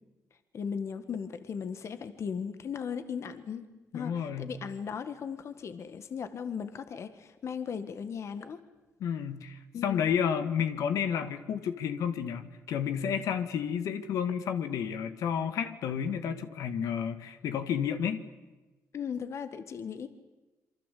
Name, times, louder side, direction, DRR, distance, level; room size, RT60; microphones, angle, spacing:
voice 1, 0.5-3.7 3.9-8.6 9.7-10.1 18.9-20.1, left 7 dB, 55° left, 10 dB, 1.7 m, -37 dB
voice 2, 3.9-4.5 9.0-18.2, left 8 dB, 80° left, 9 dB, 1.9 m, -31 dB
27.5 x 24.0 x 8.5 m, 1.1 s
cardioid pair, 95°, 6 cm